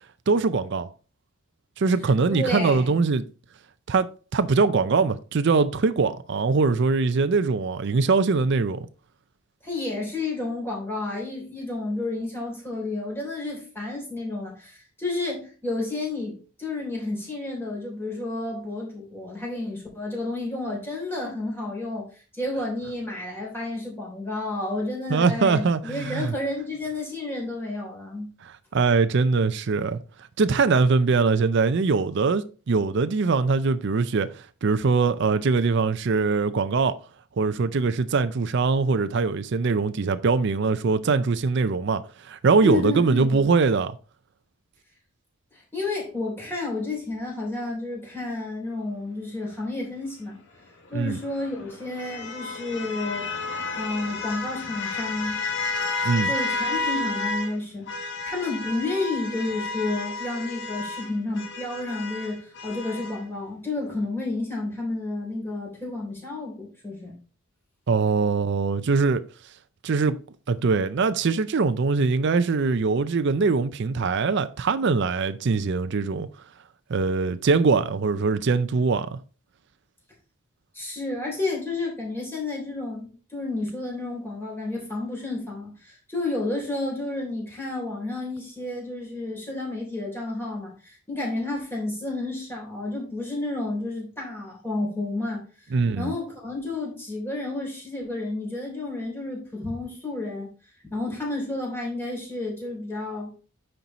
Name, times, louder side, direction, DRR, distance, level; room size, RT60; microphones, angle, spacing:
voice 1, 0.3-0.9 1.8-3.2 3.9-4.1 4.3-8.9 25.1-26.3 28.4-30.0 30.4-36.9 37.4-43.9 50.9-51.2 56.0-56.3 67.9-69.2 69.8-70.2 70.5-76.3 76.9-79.2 95.7-96.1, right 4 dB, 50° right, 0.4 m, -22 dB
voice 2, 2.3-3.0 9.6-28.3 42.6-43.4 45.5-50.4 50.9-53.3 53.8-55.4 56.3-67.2 80.7-100.5 100.8-103.3, left 2 dB, 10° left, 3.1 m, -31 dB
sound 1, 50.9-57.5 57.9-63.2, left 3 dB, 55° left, 1.4 m, -31 dB
9.3 x 4.5 x 4.0 m
head